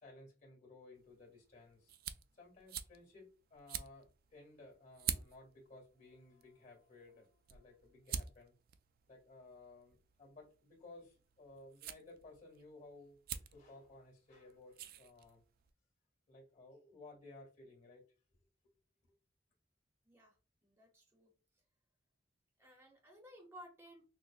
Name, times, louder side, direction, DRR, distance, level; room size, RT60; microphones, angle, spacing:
voice 1, 0.0-1.9 2.3-8.5 9.1-15.4 16.3-18.0, left 2 dB, 45° left, -1 dB, 1.9 m, -58 dB
sound 1, 0.9-15.7, right 9 dB, 50° right, 0.3 m, -48 dB
voice 2, 20.0-20.4 20.6-21.3 22.6-24.1, equal, 15° right, 2 dB, 0.7 m, -57 dB
6.1 x 2.1 x 2.4 m, 0.34 s
head